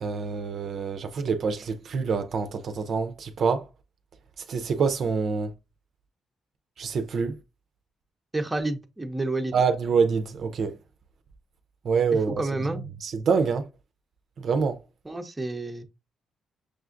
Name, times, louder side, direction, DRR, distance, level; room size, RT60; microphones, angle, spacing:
voice 1, 0.0-3.7 4.5-5.5 6.8-7.4 9.5-10.8 11.8-12.4 13.0-13.7 14.4-14.8, right 5 dB, 60° right, 0.4 m, -26 dB
voice 2, 8.3-9.5 12.4-12.8 15.0-15.8, right 2 dB, 15° right, 0.6 m, -29 dB
6.2 x 2.4 x 2.5 m
cardioid pair, 90°, 0 cm